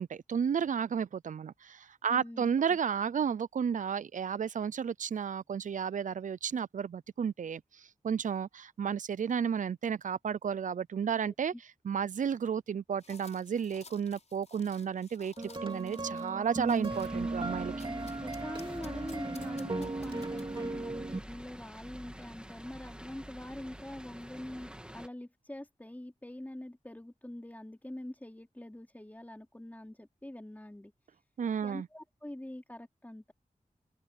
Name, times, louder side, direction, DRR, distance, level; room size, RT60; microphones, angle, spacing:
voice 1, 0.0-11.5 11.8-15.3 15.6-17.9 31.4-31.9, right 7 dB, 70° right, 0.4 m, -32 dB
voice 2, 2.1-2.8 11.1-11.3 17.8-31.2 31.6-33.3, left 1 dB, 10° left, 3.4 m, -44 dB
sound 1, 13.0-17.2 17.8-20.7, left 3 dB, 55° left, 6.7 m, -56 dB
sound 2, 15.4-21.2, right 2 dB, 40° right, 2.5 m, -36 dB
sound 3, 16.9-25.1, equal, 5° right, 2.1 m, -47 dB
wide cardioid pair, 90°, 14 cm